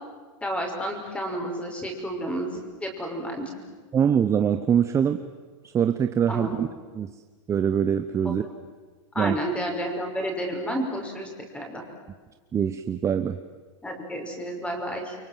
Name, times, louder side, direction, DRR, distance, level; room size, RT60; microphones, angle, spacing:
voice 1, 0.4-3.5 6.3-6.6 8.2-8.4 9.1-11.8 13.8-15.2, equal, 5° left, 2 dB, 5.5 m, -31 dB
voice 2, 3.9-5.2 5.7-6.7 6.9-7.1 7.5-8.4 9.2-9.4 12.5-13.4, right 8 dB, 20° right, 9 dB, 0.9 m, -23 dB
30.0 x 24.0 x 7.5 m, 1.4 s
supercardioid pair, 140°, 16 cm